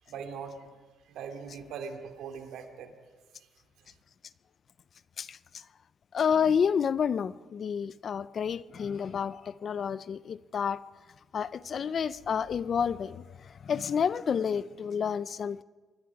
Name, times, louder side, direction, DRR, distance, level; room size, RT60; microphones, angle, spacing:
voice 1, 0.1-0.8 1.0-2.9 3.4-3.5 3.8-3.9, right 6 dB, 85° right, 2.5 m, -41 dB
voice 2, 5.2-5.6 6.1-10.8 11.3-15.6, left 7 dB, 50° left, 0.6 m, -30 dB
26.0 x 21.0 x 4.9 m
cardioid pair, 90°, 0 cm